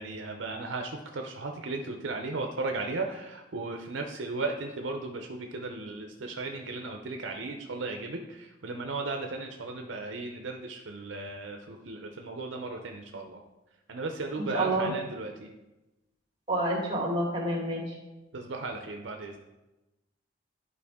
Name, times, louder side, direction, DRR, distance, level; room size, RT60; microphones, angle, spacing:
voice 1, 0.0-13.4 13.9-15.5 18.3-19.4, right 3 dB, 75° right, 3 dB, 0.6 m, -36 dB
voice 2, 14.4-14.9 16.5-17.9, right 1 dB, 25° right, -3 dB, 2.2 m, -28 dB
11.0 x 4.6 x 3.6 m, 1.0 s
head